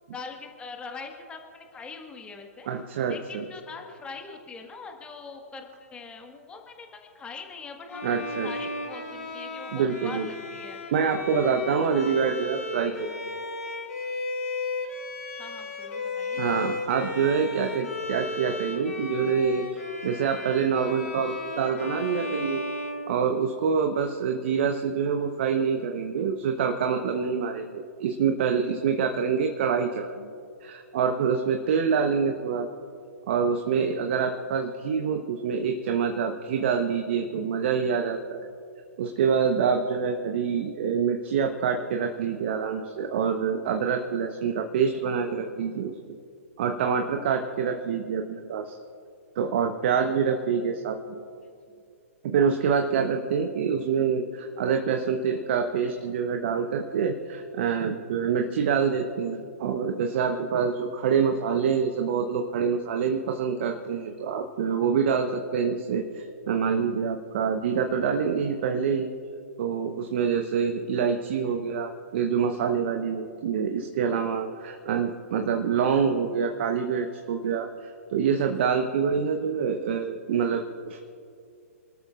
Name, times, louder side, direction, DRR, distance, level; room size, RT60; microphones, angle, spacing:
voice 1, 0.1-2.7 3.1-10.8 15.4-16.4 51.4-51.8 71.3-71.5, left 4 dB, 15° left, 3 dB, 1.6 m, -42 dB
voice 2, 2.7-3.4 8.0-8.5 9.7-10.3 10.9-13.2 16.4-22.6 23.1-30.3 30.6-32.7 33.3-38.5 39.0-46.2 46.6-48.8 49.4-51.2 52.2-69.1 69.6-81.0, right 6 dB, 45° right, 5 dB, 1.0 m, -26 dB
Bowed string instrument, 7.9-23.8, left 3 dB, 75° left, 2.3 m, -35 dB
28.0 x 13.0 x 2.5 m, 2.4 s
figure-of-eight pair, 120°, 8 cm